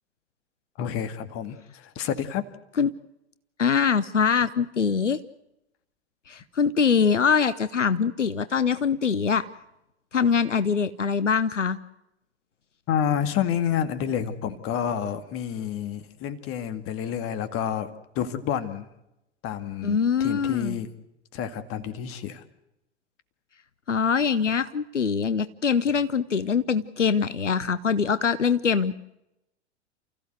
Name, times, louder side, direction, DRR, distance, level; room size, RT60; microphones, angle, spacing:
voice 1, 0.8-2.4 12.9-17.9 18.2-18.9 19.4-20.9 21.3-22.4, left 9 dB, 40° left, 11 dB, 2.1 m, -29 dB
voice 2, 3.6-5.2 6.3-9.5 10.1-11.8 19.8-20.8 23.9-29.0, left 6 dB, 85° left, 15 dB, 0.8 m, -23 dB
29.5 x 15.5 x 8.0 m, 0.89 s
figure-of-eight pair, 90°, 35 cm